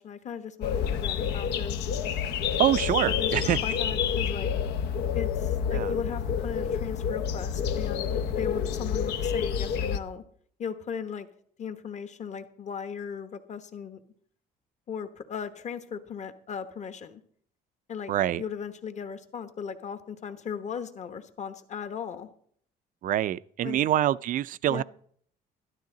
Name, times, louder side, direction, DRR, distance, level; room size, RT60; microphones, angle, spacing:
voice 1, 0.0-1.8 3.0-4.5 5.1-10.2 10.6-11.3 11.6-14.0 14.9-17.2 17.9-18.1 18.4-22.3 23.6-23.9 24.7-24.8, left 7 dB, 45° left, 1.2 m, -37 dB
sound 1, 0.6-10.0, left 7 dB, 80° left, 0.8 m, -28 dB
voice 2, 2.6-3.6 5.7-5.9 18.1-18.4 23.0-24.8, right 12 dB, 50° right, 0.4 m, -25 dB
13.0 x 12.0 x 3.9 m
cardioid pair, 110°, 17 cm